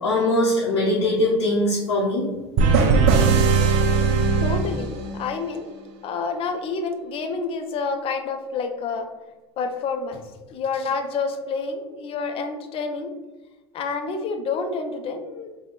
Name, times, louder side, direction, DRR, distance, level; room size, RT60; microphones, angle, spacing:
voice 1, 0.0-2.2, left 1 dB, 85° left, -6 dB, 0.6 m, -21 dB
sound 1, 2.6-5.4, right 5 dB, 55° right, 0.5 m, -19 dB
voice 2, 4.4-5.7 6.0-9.1 9.6-10.2 10.5-13.1 13.7-15.5, left 4 dB, 40° left, 6 dB, 0.5 m, -28 dB
2.9 x 2.2 x 4.0 m, 1.1 s
hypercardioid pair, 75°, 14 cm